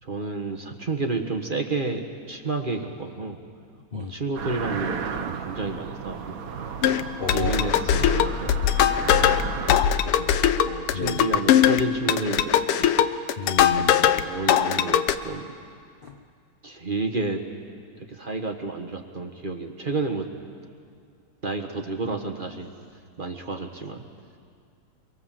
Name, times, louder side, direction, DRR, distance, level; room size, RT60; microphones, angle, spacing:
voice 1, 0.0-3.4 3.9-6.7 7.3-8.7 10.0-13.0 14.2-15.5 16.6-17.4 18.0-20.3 21.4-22.7 23.2-24.0, right 3 dB, 30° right, 3 dB, 1.2 m, -31 dB
sound 1, 4.3-9.8, right 6 dB, 50° right, 1.2 m, -34 dB
sound 2, 6.8-14.2 14.5-15.2, left 10 dB, 85° left, 1.7 m, -21 dB
voice 2, 7.2-7.7 10.9-11.2 13.4-14.1 16.0-16.1, left 4 dB, 70° left, 4 dB, 0.5 m, -31 dB
25.0 x 23.5 x 7.6 m, 2.2 s
omnidirectional pair, 2.4 m